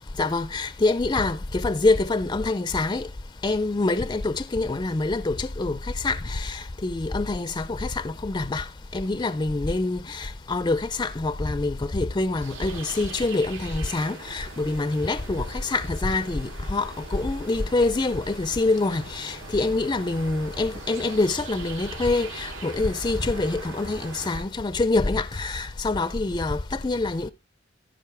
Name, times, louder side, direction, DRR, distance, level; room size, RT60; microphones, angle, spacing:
voice 1, 0.2-3.1 3.4-8.7 8.9-27.3, left 2 dB, 20° left, 0.4 m, -25 dB
sound 1, 12.4-24.4, right 3 dB, 75° right, 3.0 m, -41 dB
15.0 x 5.2 x 3.4 m
head